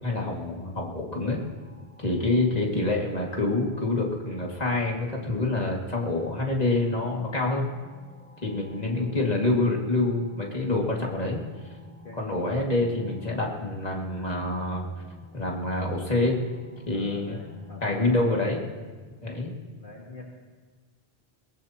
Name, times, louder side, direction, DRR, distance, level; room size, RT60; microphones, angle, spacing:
voice 1, 0.0-1.4 2.0-7.7 8.4-11.4 12.2-14.9 15.3-16.4 16.9-17.4 17.8-18.6 19.2-19.5, left 2 dB, 40° left, -2 dB, 2.4 m, -26 dB
sound 1, 0.7-18.4, left 3 dB, 10° left, 2.7 m, -52 dB
voice 2, 8.5-8.8 11.9-12.5 16.9-18.2 19.7-20.2, left 3 dB, 55° left, -3 dB, 1.8 m, -45 dB
23.0 x 18.5 x 3.0 m, 1.4 s
omnidirectional pair, 1.1 m